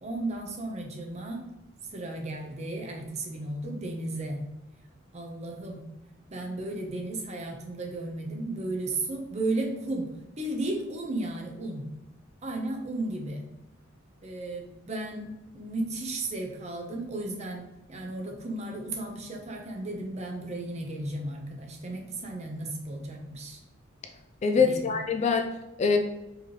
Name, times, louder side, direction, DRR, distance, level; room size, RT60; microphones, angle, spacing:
voice 1, 0.0-1.4 1.9-4.4 5.1-5.8 6.3-11.9 12.4-13.5 14.2-23.6 24.5-24.9, right 2 dB, 35° right, 1 dB, 0.6 m, -34 dB
voice 2, 24.4-26.0, left 5 dB, 35° left, 4 dB, 0.3 m, -24 dB
4.6 x 3.0 x 3.1 m, 0.96 s
head